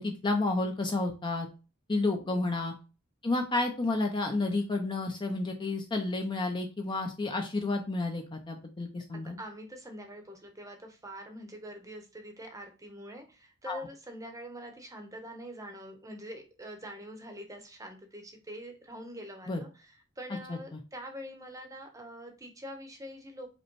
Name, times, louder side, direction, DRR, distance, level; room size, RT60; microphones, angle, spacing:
voice 1, 0.0-1.5 1.9-2.7 3.2-9.4 13.7-13.8 19.5-19.6 20.3-20.8, left 2 dB, 20° left, 3 dB, 0.5 m, -31 dB
voice 2, 2.0-2.4 9.1-23.5, equal, 15° right, 4 dB, 0.8 m, -45 dB
5.1 x 2.1 x 4.5 m, 0.33 s
head